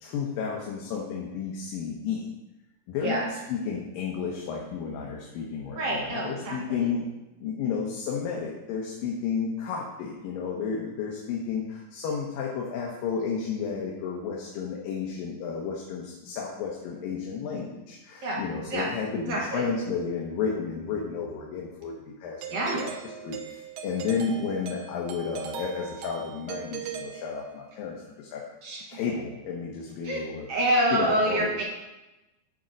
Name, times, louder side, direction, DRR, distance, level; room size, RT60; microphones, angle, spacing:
voice 1, 0.0-2.3 2.9-7.1 7.4-22.9 23.2-28.4 28.9-30.5 30.9-31.5, left 6 dB, 75° left, -2 dB, 2.7 m, -32 dB
voice 2, 5.7-6.8 18.2-18.4 18.7-18.9 19.3-19.7 22.5-22.8 28.6-28.8 30.0-30.2 30.5-31.6, right 1 dB, 55° right, -2 dB, 2.0 m, -27 dB
Doorbell, 22.4-27.8, right 9 dB, 75° right, 2.3 m, -40 dB
9.9 x 4.3 x 6.2 m, 1.0 s
omnidirectional pair, 4.1 m